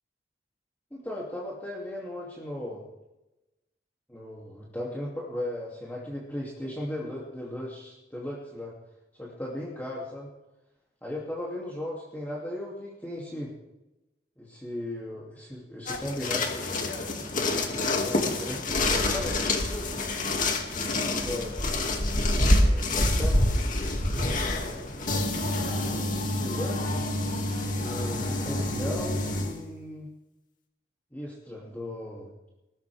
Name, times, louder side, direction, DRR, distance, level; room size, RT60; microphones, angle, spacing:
voice 1, 0.9-2.8 4.1-8.7 9.1-10.3 11.0-13.5 14.4-16.9 17.5-18.6 19.0-20.2 21.1-22.1 22.5-23.4 24.1-25.0 26.4-27.5 27.8-30.1 31.1-32.3, left 1 dB, 10° left, -6 dB, 2.7 m, -37 dB
sound 1, 15.9-29.6, left 1 dB, 50° left, 2.4 m, -27 dB
21.5 x 17.5 x 3.6 m, 0.99 s
head